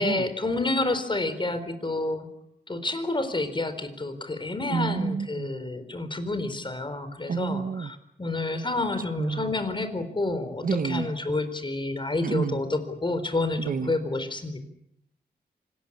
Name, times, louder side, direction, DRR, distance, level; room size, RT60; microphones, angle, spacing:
voice 1, 0.0-2.3 2.7-14.6, left 2 dB, 30° left, 10 dB, 4.1 m, -29 dB
voice 2, 4.7-5.5 7.3-7.9 9.2-9.5 10.6-11.1 12.2-12.6 13.6-13.9, right 5 dB, 55° right, 11 dB, 1.2 m, -29 dB
25.5 x 19.5 x 8.6 m, 0.76 s
wide cardioid pair, 100°, 17 cm